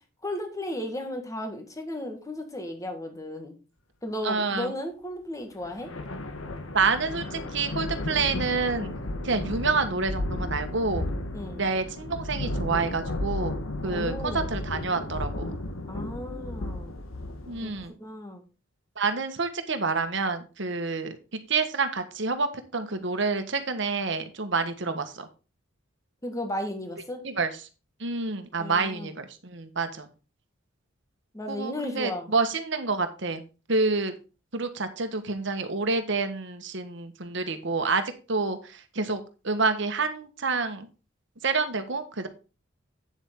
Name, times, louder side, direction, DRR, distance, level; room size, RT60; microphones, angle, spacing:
voice 1, 0.2-3.6 4.0-5.9 11.3-11.6 13.9-14.5 15.9-17.0 17.6-17.7 18.0-18.4 26.2-27.2 28.6-29.1 31.3-32.3, left 1 dB, 15° left, 5 dB, 1.8 m, -35 dB
voice 2, 4.2-4.7 6.7-8.9 9.2-11.0 11.5-13.5 13.8-15.5 17.5-17.9 19.0-21.2 21.5-22.5 22.7-25.3 27.2-27.5 28.0-30.1 31.5-33.4 33.7-34.1 34.5-38.0 38.3-40.9 41.4-42.3, right 4 dB, 60° right, 8 dB, 1.4 m, -28 dB
sound 1, 5.6-17.9, left 1 dB, 85° left, 1.3 m, -33 dB
9.0 x 7.4 x 3.7 m, 0.32 s
head